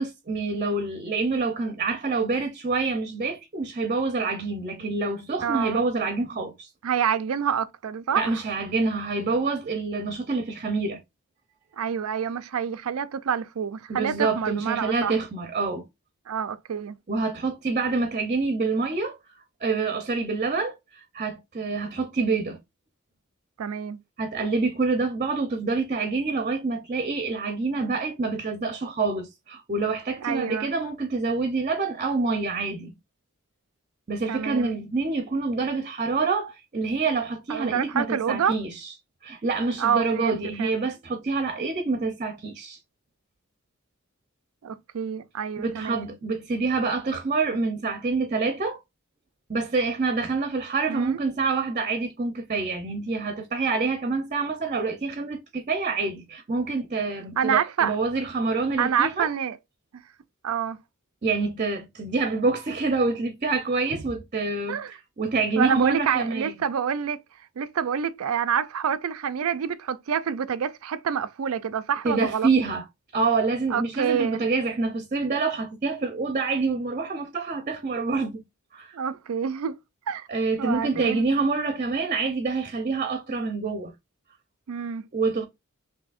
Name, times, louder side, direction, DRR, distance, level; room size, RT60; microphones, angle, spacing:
voice 1, 0.0-6.7 8.2-11.0 13.9-15.8 17.1-19.2 19.6-22.6 24.2-32.9 34.1-38.9 39.2-42.8 45.6-48.8 49.5-59.3 61.2-64.8 65.2-66.5 72.0-72.8 73.1-78.4 78.7-79.0 80.3-83.9 85.1-85.5, right 3 dB, 35° right, 0.6 m, -27 dB
voice 2, 5.4-5.8 6.8-8.4 11.8-15.2 16.3-17.0 23.6-24.0 30.2-30.7 34.3-34.8 37.5-38.6 39.8-40.7 44.6-46.1 50.9-51.2 57.4-58.0 58.8-59.6 60.4-60.8 64.7-64.9 65.6-67.2 67.6-72.5 73.7-74.4 78.9-79.8 80.1-80.3 80.6-81.2 84.7-85.0, right 7 dB, 85° right, 0.4 m, -27 dB
6.2 x 2.7 x 2.4 m
head